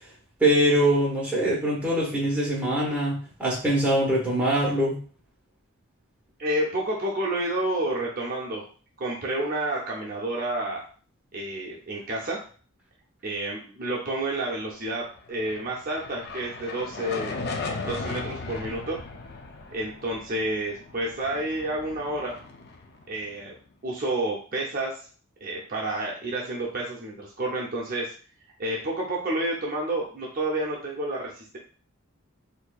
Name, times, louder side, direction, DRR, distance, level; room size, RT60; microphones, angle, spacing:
voice 1, 0.4-5.0, right 1 dB, 5° right, -5 dB, 1.1 m, -23 dB
voice 2, 6.4-8.6 9.0-10.8 11.3-12.4 13.2-17.3 17.8-19.0 19.7-22.4 23.1-23.5 23.8-25.0 25.4-28.1 28.6-31.6, right 1 dB, 40° right, -3 dB, 0.6 m, -30 dB
sound 1, 15.2-23.6, left 3 dB, 50° left, 0.4 m, -37 dB
4.3 x 2.6 x 2.3 m, 0.42 s
head